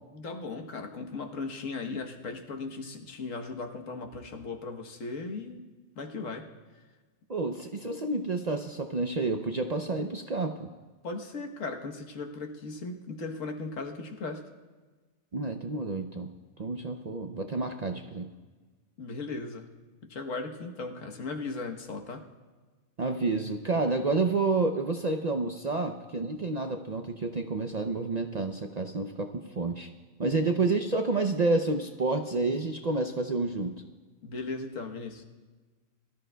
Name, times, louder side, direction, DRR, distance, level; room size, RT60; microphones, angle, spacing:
voice 1, 0.1-5.6 6.0-6.5 11.0-14.4 19.0-19.7 20.0-22.2 30.2-30.4 34.2-35.2, left 3 dB, 70° left, 4 dB, 1.5 m, -37 dB
voice 2, 7.3-10.7 15.3-16.3 16.6-18.3 23.0-29.9 30.2-33.7, right 3 dB, 50° right, 4 dB, 0.5 m, -29 dB
22.0 x 13.0 x 2.2 m, 1.4 s
omnidirectional pair, 1.4 m